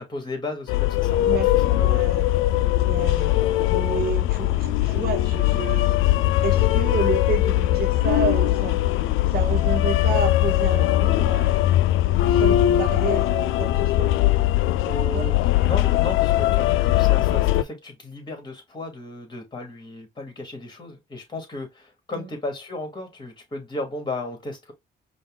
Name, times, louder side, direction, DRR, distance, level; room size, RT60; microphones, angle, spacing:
voice 1, 0.0-2.1 3.3-3.4 14.8-24.7, left 2 dB, 20° left, 2.5 m, -35 dB
sound 1, 0.7-17.6, left 14 dB, 85° left, 0.4 m, -20 dB
voice 2, 1.2-2.3 2.9-3.3 3.7-6.0 6.4-8.8 9.3-11.7 12.2-14.1 15.1-15.3 22.2-22.3, right 7 dB, 50° right, 0.7 m, -30 dB
5.2 x 2.5 x 3.7 m
cardioid pair, 90°, 20 cm